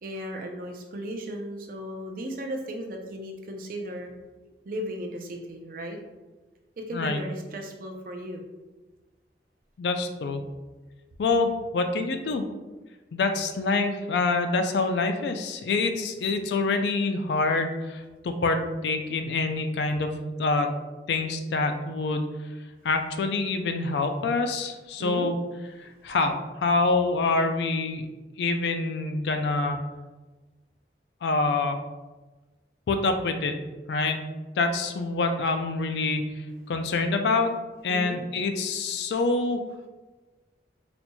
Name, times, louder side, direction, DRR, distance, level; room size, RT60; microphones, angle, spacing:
voice 1, 0.0-4.1 4.6-6.0 6.8-8.4 25.0-25.3 37.9-38.2, equal, 50° right, 2 dB, 0.5 m, -36 dB
voice 2, 9.8-10.4 11.2-12.4 13.1-20.7 21.1-22.3 22.8-25.4 26.0-28.1 28.4-29.8 31.2-31.8 32.9-33.5 33.9-34.2 34.6-36.3 36.7-37.5 37.8-39.6, left 3 dB, 75° left, 6 dB, 0.3 m, -26 dB
4.1 x 2.9 x 2.2 m, 1.2 s
head